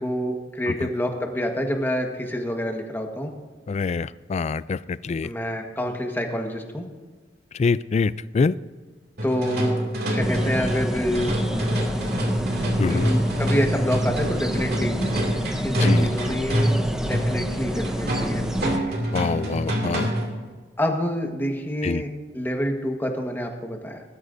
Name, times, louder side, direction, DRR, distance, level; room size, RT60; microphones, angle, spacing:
voice 1, 0.0-3.3 5.2-6.8 9.2-9.8 10.1-11.4 12.8-15.0 15.6-16.7 17.0-19.0 20.8-24.0, equal, 10° left, 3 dB, 1.4 m, -27 dB
voice 2, 3.7-5.3 7.6-8.5 12.8-13.1 15.8-16.1 19.1-20.1 21.8-22.0, left 4 dB, 40° left, 17 dB, 0.3 m, -25 dB
sound 1, 9.2-20.4, equal, 60° right, 2.5 m, -26 dB
sound 2, 10.2-18.8, equal, 5° right, 0.8 m, -29 dB
20.0 x 12.5 x 2.7 m, 1.4 s
head